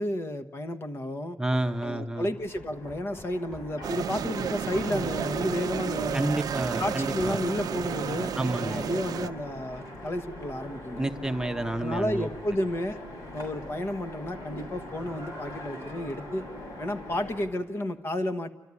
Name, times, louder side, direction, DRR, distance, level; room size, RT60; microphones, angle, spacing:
voice 1, 0.0-1.4 1.8-6.4 6.8-8.3 8.6-11.1 11.8-13.0 13.3-16.5 16.8-18.5, left 1 dB, 35° left, 8 dB, 1.2 m, -31 dB
voice 2, 1.4-2.3 6.1-7.4 8.3-8.8 11.0-12.3, right 1 dB, 10° right, 5 dB, 0.9 m, -30 dB
Run, 1.5-8.1, equal, 10° left, 2.4 m, -49 dB
Train, 2.1-17.5, left 1 dB, 75° left, 6.9 m, -42 dB
sound 1, 3.8-9.3, right 8 dB, 70° right, 0.6 m, -32 dB
29.0 x 14.0 x 9.7 m, 1.3 s
cardioid pair, 105°, 7 cm